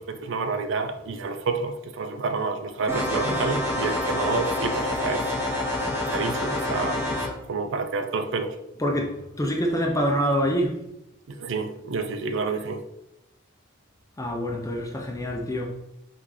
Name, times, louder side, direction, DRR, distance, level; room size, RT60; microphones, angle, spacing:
voice 1, 0.0-5.6 6.1-7.1 7.5-8.6 11.3-12.8, right 4 dB, 60° right, 0.4 m, -29 dB
sound 1, 2.9-7.3, left 1 dB, 10° right, 1.0 m, -27 dB
voice 2, 8.8-10.8 14.2-15.7, equal, 15° left, 0.5 m, -26 dB
4.2 x 3.2 x 3.7 m
head